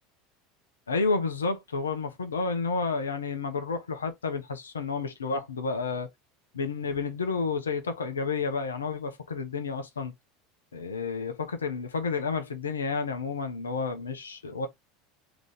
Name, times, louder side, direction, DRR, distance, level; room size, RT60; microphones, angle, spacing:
voice 1, 0.9-6.1 6.5-10.1 10.7-14.7, left 4 dB, 75° left, 0.8 m, -30 dB
3.7 x 3.0 x 3.4 m
figure-of-eight pair, 75°, 0 cm